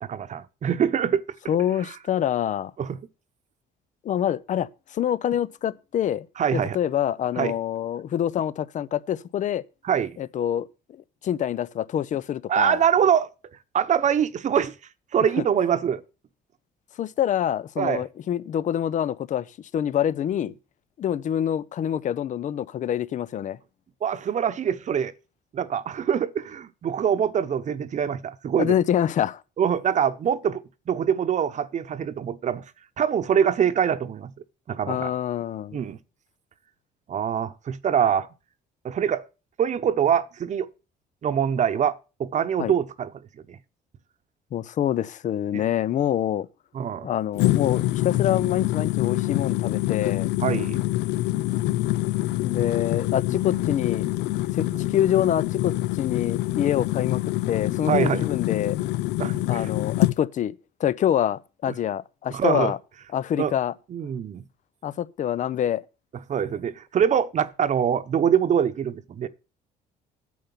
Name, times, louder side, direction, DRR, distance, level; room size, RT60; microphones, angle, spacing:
voice 1, 0.0-1.2 2.8-3.0 6.4-6.8 7.4-7.5 9.8-10.2 12.5-13.3 13.7-14.7 15.1-16.0 17.8-18.0 24.0-25.1 25.5-28.7 29.6-32.6 33.0-34.3 34.7-35.1 35.7-36.0 37.1-38.3 38.8-39.2 39.6-40.7 41.2-43.1 43.5-43.6 45.5-45.6 46.7-47.1 50.4-50.8 57.9-58.2 59.2-59.7 62.3-62.7 63.4-63.5 63.9-64.4 66.3-69.3, right 8 dB, 45° right, 1.0 m, -24 dB
voice 2, 1.5-2.7 4.0-6.3 6.5-9.6 10.2-10.7 11.2-12.8 17.0-20.5 21.0-23.6 28.6-29.4 34.9-35.8 42.6-42.7 44.5-46.5 47.0-50.3 52.4-54.1 54.5-58.8 59.5-60.5 60.8-62.8 63.1-63.7 64.8-65.8, left 10 dB, 50° left, 0.6 m, -26 dB
sound 1, 47.4-60.2, left 17 dB, 85° left, 0.4 m, -25 dB
9.5 x 6.9 x 7.0 m
cardioid pair, 110°, 17 cm